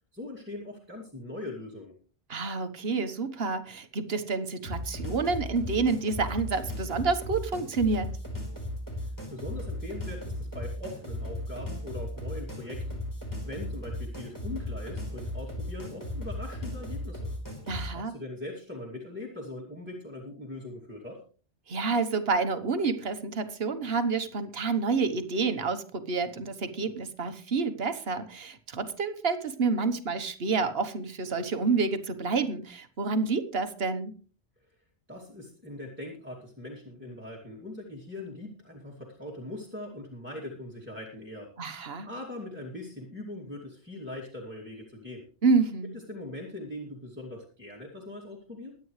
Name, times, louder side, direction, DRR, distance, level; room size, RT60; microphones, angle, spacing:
voice 1, 0.1-2.0 8.9-13.0 13.4-17.3 17.9-21.2 35.1-45.2 45.9-48.7, left 1 dB, 10° right, -3 dB, 2.6 m, -41 dB
voice 2, 2.3-8.1 17.7-18.1 21.7-34.1 41.6-42.1 45.4-45.9, right 4 dB, 60° right, 10 dB, 1.4 m, -28 dB
sound 1, 4.6-17.9, left 1 dB, 15° left, 4.3 m, -36 dB
23.0 x 9.1 x 3.2 m, 0.39 s
omnidirectional pair, 1.2 m